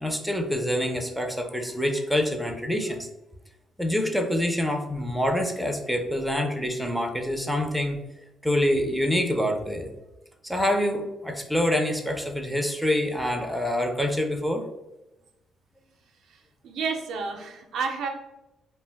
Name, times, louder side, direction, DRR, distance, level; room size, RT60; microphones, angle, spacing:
voice 1, 0.0-3.1 3.8-8.0 8.4-9.9 10.4-14.6, left 1 dB, ahead, 3 dB, 0.4 m, -26 dB
voice 2, 16.3-18.1, right 5 dB, 75° right, 3 dB, 0.4 m, -31 dB
2.4 x 2.1 x 3.3 m, 0.96 s
cardioid pair, 90°, 0 cm